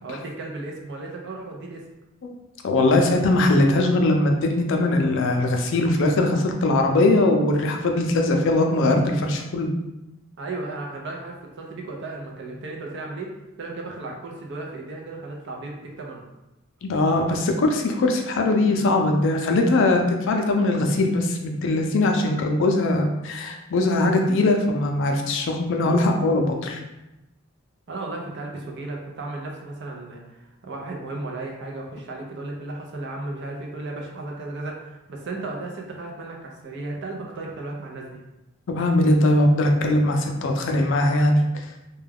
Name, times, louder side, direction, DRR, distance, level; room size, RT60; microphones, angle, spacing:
voice 1, 0.0-1.8 10.4-16.2 27.9-38.2, right 2 dB, 60° right, 0 dB, 0.5 m, -35 dB
voice 2, 2.6-9.7 16.8-26.8 38.7-41.4, left 2 dB, 65° left, 3 dB, 0.4 m, -21 dB
2.2 x 2.2 x 3.4 m, 0.96 s
head